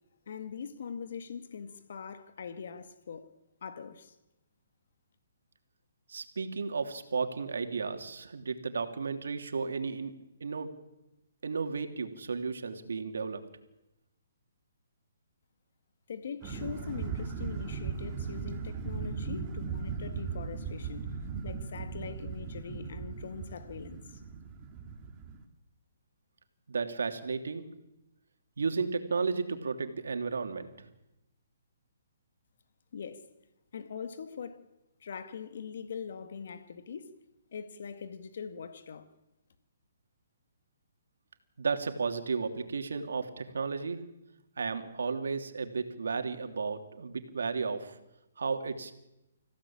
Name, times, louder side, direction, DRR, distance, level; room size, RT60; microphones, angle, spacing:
voice 1, 0.3-3.3 3.6-4.2 16.1-21.1 21.4-24.2 32.9-33.2 33.7-34.6 35.0-37.2 37.5-39.1, left 6 dB, 65° left, 2.1 m, -42 dB
voice 2, 6.1-10.1 10.4-10.7 11.4-13.4 26.7-27.6 28.6-30.9 41.6-44.0 44.6-48.0 48.4-48.9, right 4 dB, 80° right, 3.0 m, -33 dB
sound 1, 16.4-25.4, right 5 dB, 25° right, 2.8 m, -38 dB
26.5 x 16.0 x 8.8 m
hypercardioid pair, 150°, 0 cm